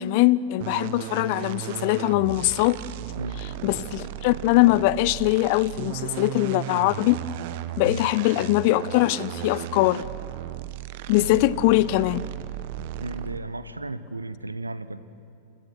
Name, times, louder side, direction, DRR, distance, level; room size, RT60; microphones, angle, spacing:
voice 1, 0.0-2.8 3.6-7.2 7.8-10.0 11.1-12.2, left 18 dB, 45° left, 20 dB, 0.6 m, -22 dB
sound 1, 0.6-13.6, right 13 dB, 50° right, 1.0 m, -35 dB
voice 2, 3.2-3.5 7.8-8.1 11.2-11.4 13.0-15.0, right 2 dB, 80° right, 14 dB, 1.1 m, -34 dB
30.0 x 30.0 x 6.2 m, 2.6 s
figure-of-eight pair, 90°, 0 cm